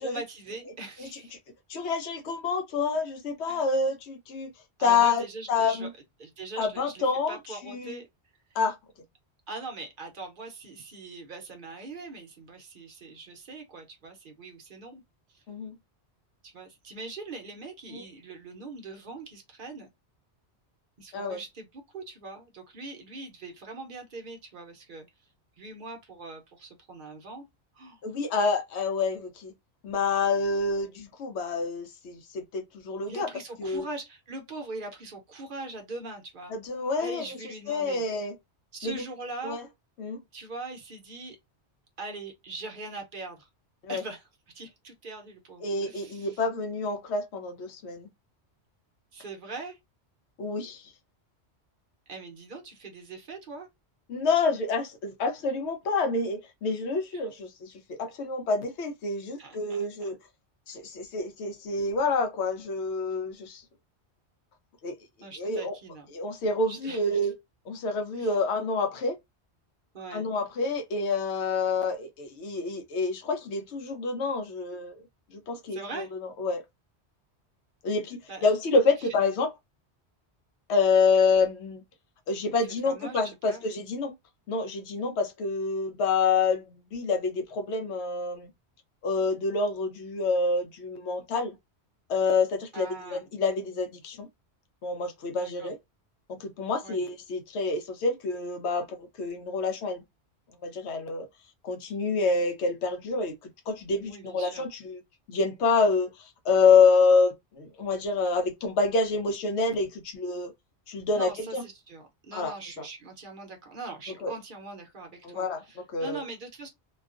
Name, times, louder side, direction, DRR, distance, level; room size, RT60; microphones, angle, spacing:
voice 1, 0.0-1.4 3.5-3.7 4.8-5.9 6.2-8.1 9.5-15.0 15.3-15.4 16.4-19.9 21.0-25.1 25.6-27.4 27.7-28.0 33.1-36.5 37.0-38.1 38.7-39.6 40.3-41.4 42.0-43.5 43.9-44.3 44.5-46.5 49.1-49.8 52.1-53.7 57.1-57.2 59.4-60.1 65.2-66.1 66.7-67.3 68.2-68.4 69.9-70.3 75.7-76.1 78.3-78.5 79.0-79.1 82.6-83.2 83.4-83.6 92.7-93.2 95.4-95.7 96.8-97.0 104.0-104.7 111.1-116.7, right 3 dB, 55° right, 0.8 m, -42 dB
voice 2, 1.7-4.5 4.8-5.2 5.5-5.9 6.6-7.4 7.7-8.0 8.6-8.8 15.5-15.8 17.9-18.0 21.1-21.4 28.0-29.5 29.8-33.3 33.6-33.8 36.5-37.2 37.7-38.3 38.8-39.0 39.4-39.6 40.0-40.2 43.8-44.0 45.6-48.1 50.4-50.8 54.1-60.2 60.7-63.6 64.8-64.9 65.4-65.7 66.1-67.4 67.7-69.1 70.1-74.9 75.3-76.1 76.4-76.6 77.8-79.5 80.7-81.8 82.3-84.1 84.5-88.5 89.0-91.5 92.1-94.3 94.8-95.8 96.3-100.0 100.6-101.3 101.6-105.0 105.3-110.5 110.9-111.6 112.3-112.5 114.2-114.3 115.2-115.6 115.9-116.2, left 4 dB, 80° left, 0.8 m, -27 dB
2.4 x 2.3 x 2.4 m
omnidirectional pair, 1.1 m